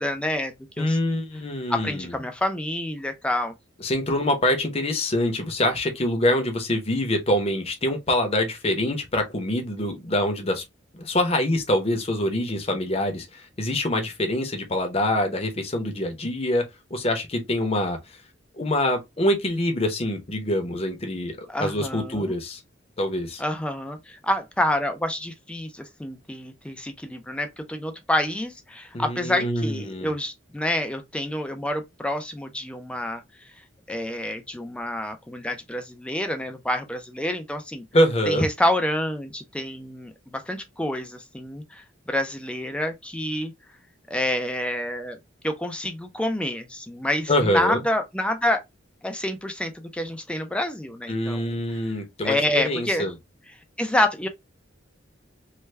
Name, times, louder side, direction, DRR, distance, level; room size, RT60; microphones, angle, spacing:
voice 1, 0.0-1.0 1.7-3.5 21.5-22.3 23.4-33.2 33.9-37.8 38.3-41.8 42.1-43.5 44.1-45.2 45.4-48.6 49.0-51.6 52.2-53.1 53.8-54.3, left 1 dB, 5° left, 0.4 m, -28 dB
voice 2, 0.8-2.1 3.8-10.6 10.9-16.6 16.9-18.0 18.6-22.6 23.0-23.4 28.9-30.1 37.9-38.5 47.3-47.8 51.1-53.1, left 1 dB, 30° left, 0.8 m, -25 dB
3.3 x 2.2 x 3.2 m
head